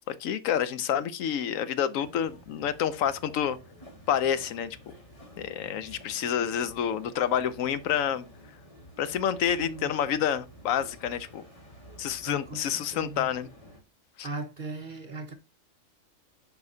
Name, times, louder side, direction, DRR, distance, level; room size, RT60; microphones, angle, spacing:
voice 1, 0.1-3.6 4.1-4.8 5.4-8.2 9.0-11.4 12.0-13.5 14.2-14.3, left 9 dB, 85° left, 1.1 m, -28 dB
sound 1, 2.0-13.8, equal, 25° left, 1.9 m, -51 dB
voice 2, 9.4-9.9 12.2-13.3 14.2-15.3, right 3 dB, 40° right, 1.0 m, -38 dB
8.1 x 5.2 x 2.7 m
omnidirectional pair, 1.3 m